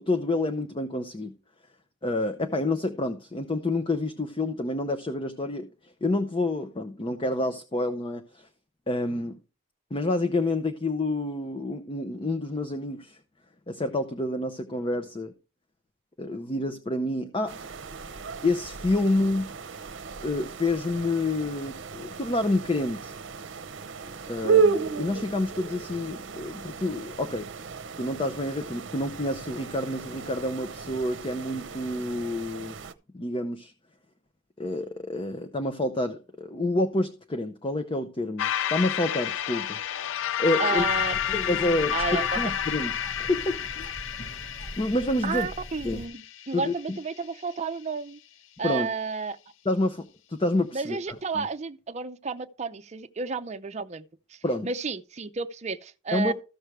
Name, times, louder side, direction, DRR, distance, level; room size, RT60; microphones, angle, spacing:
voice 1, 0.0-1.4 2.0-5.7 6.0-8.5 8.9-9.4 9.9-13.2 13.7-15.3 16.2-17.6 18.4-19.5 20.2-23.1 24.3-27.5 28.0-32.8 33.1-33.7 34.6-39.8 40.4-40.8 41.3-42.9 43.2-43.9 44.8-45.5 45.8-46.0 46.5-47.0 48.6-48.9 49.6-51.0 51.3-51.5 54.4-54.7 56.1-56.3, left 2 dB, 25° left, 0.7 m, -28 dB
sound 1, 17.5-32.9, right 5 dB, 70° right, 0.8 m, -33 dB
sound 2, 38.4-46.9, left 10 dB, 80° left, 0.4 m, -30 dB
voice 2, 40.6-42.3 45.2-48.2 48.6-49.4 50.7-54.0 54.3-56.3, right 4 dB, 35° right, 0.6 m, -32 dB
Bird, 40.8-46.1, equal, 65° left, 1.9 m, -42 dB
14.5 x 6.2 x 3.3 m
head